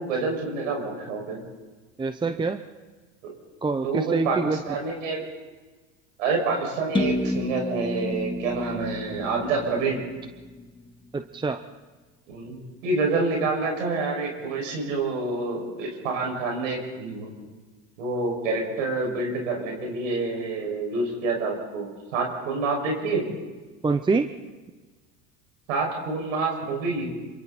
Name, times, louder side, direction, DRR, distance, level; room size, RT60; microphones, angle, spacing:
voice 1, 0.0-1.4 3.2-3.3 3.8-4.4 4.7-5.3 6.2-10.0 12.3-17.3 18.0-23.3 25.7-27.1, right 3 dB, 90° right, 1 dB, 6.2 m, -27 dB
voice 2, 2.0-2.6 3.6-4.6 11.1-11.6 23.8-24.3, right 4 dB, 10° right, 9 dB, 0.8 m, -25 dB
sound 1, 6.9-10.8, left 1 dB, 15° left, 1.9 m, -30 dB
26.5 x 25.0 x 4.2 m, 1.3 s
supercardioid pair, 110°, 37 cm